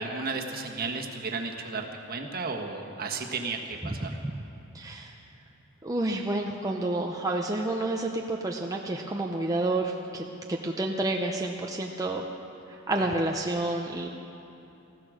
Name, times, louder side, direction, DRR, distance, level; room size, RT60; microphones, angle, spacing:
voice 1, 0.0-4.2 13.0-13.1, right 4 dB, 45° right, 2 dB, 1.4 m, -34 dB
voice 2, 4.7-5.1 5.8-12.3 12.7-14.1, right 2 dB, 15° right, 0 dB, 0.7 m, -29 dB
19.0 x 15.0 x 5.0 m, 2.9 s
head